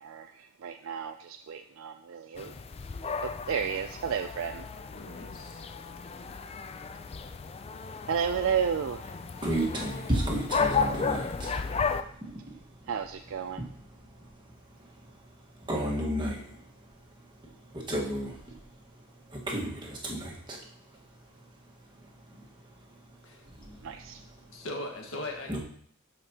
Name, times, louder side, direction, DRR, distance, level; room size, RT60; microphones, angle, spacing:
voice 1, 0.0-2.5 3.5-4.7 8.1-9.0 12.9-13.6 23.8-24.2, right 7 dB, 65° right, 7 dB, 0.4 m, -32 dB
sound 1, 2.4-12.0, left 5 dB, 30° left, 0.3 m, -34 dB
voice 2, 4.9-5.6 23.2-23.4 24.5-25.6, left 1 dB, 70° left, 2 dB, 1.6 m, -39 dB
voice 3, 9.4-12.6 13.5-13.8 14.8-14.9 15.6-16.7 17.7-18.6 19.3-20.6 22.3-22.4 23.4-24.0 25.5-25.6, right 1 dB, 20° right, -2 dB, 1.5 m, -33 dB
12.5 x 5.1 x 2.9 m, 0.63 s
head